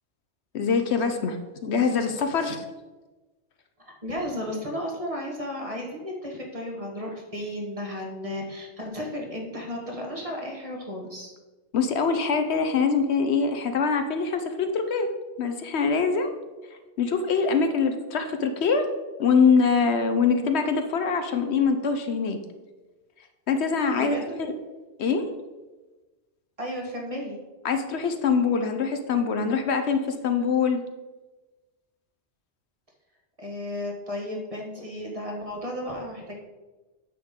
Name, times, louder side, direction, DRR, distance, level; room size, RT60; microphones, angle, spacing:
voice 1, 0.5-2.6 11.7-15.1 15.4-16.3 17.0-18.9 19.2-22.4 23.5-24.6 25.0-25.2 27.6-30.8, left 5 dB, 70° left, 7 dB, 1.0 m, -24 dB
voice 2, 4.0-11.3 24.0-24.2 25.1-25.3 26.6-27.4 33.4-36.4, left 1 dB, 30° right, -1 dB, 1.5 m, -34 dB
9.4 x 7.1 x 3.6 m, 1.2 s
omnidirectional pair, 1.2 m